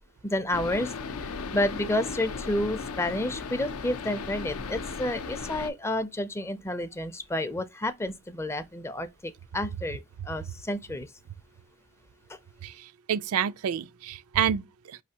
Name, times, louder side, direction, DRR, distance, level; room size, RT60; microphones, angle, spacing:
voice 1, 0.2-0.9 1.2-11.1, left 1 dB, 10° left, 0.4 m, -30 dB
sound 1, 0.5-5.7, left 4 dB, 75° left, 0.5 m, -36 dB
voice 2, 12.6-15.0, right 8 dB, 80° right, 0.4 m, -29 dB
5.4 x 3.2 x 2.8 m
head